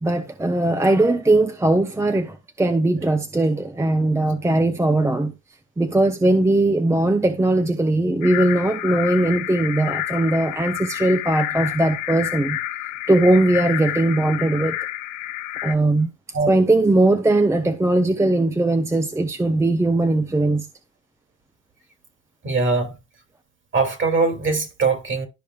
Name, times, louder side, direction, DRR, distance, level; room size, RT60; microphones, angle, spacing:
voice 1, 0.0-5.3 5.8-12.6 13.1-14.8 15.6-16.1 16.5-20.7, right 2 dB, 10° right, 0.7 m, -19 dB
sound 1, 8.2-15.7, left 15 dB, 80° left, 1.2 m, -29 dB
voice 2, 22.4-22.9 23.7-25.3, right 4 dB, 40° right, 2.7 m, -21 dB
12.0 x 5.3 x 2.4 m
cardioid pair, 105°, 31 cm